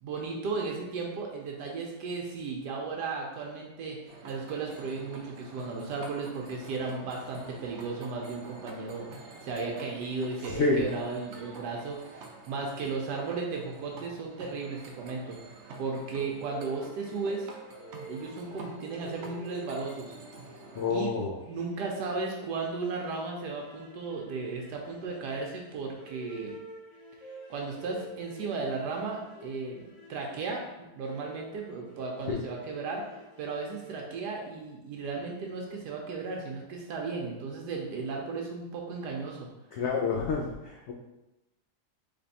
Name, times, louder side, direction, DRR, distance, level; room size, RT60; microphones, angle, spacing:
voice 1, 0.0-4.0 4.2-9.1 9.4-17.5 18.0-20.1 20.9-21.1 21.4-26.6 27.5-33.0 33.4-39.5, right 4 dB, 85° right, 0 dB, 1.3 m, -35 dB
sound 1, 4.1-21.0, right 3 dB, 65° right, 0.7 m, -48 dB
voice 2, 10.5-10.8 20.7-21.4 32.3-32.4 39.7-40.9, left 4 dB, 80° left, -1 dB, 0.6 m, -28 dB
sound 2, 16.1-34.6, left 1 dB, 55° left, 1.2 m, -49 dB
3.4 x 3.4 x 4.0 m, 0.95 s
omnidirectional pair, 1.8 m